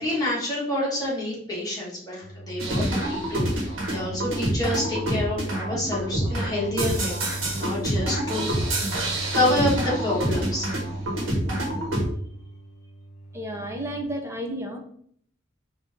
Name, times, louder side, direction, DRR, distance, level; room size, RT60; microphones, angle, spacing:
voice 1, 0.0-8.6 9.3-10.7, left 1 dB, 20° left, -6 dB, 1.6 m, -28 dB
sound 1, 2.2-14.0, right 1 dB, 55° left, 0.7 m, -37 dB
sound 2, 2.6-12.1, right 1 dB, 65° right, 1.3 m, -27 dB
voice 2, 13.3-14.8, right 1 dB, 15° right, 1 dB, 0.7 m, -32 dB
4.5 x 2.7 x 3.6 m, 0.62 s
head